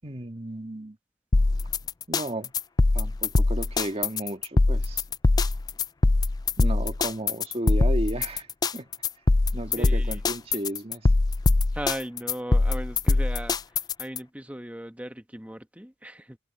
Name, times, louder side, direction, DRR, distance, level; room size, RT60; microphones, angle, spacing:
voice 1, 0.0-1.0 2.1-2.5 2.9-5.0 6.6-8.5 8.7-8.9 9.5-11.1, right 1 dB, 30° right, 1.9 m, -33 dB
sound 1, 1.3-14.2, left 3 dB, 20° left, 0.3 m, -22 dB
voice 2, 9.8-10.2 11.7-16.4, right 1 dB, 10° right, 1.3 m, -37 dB
head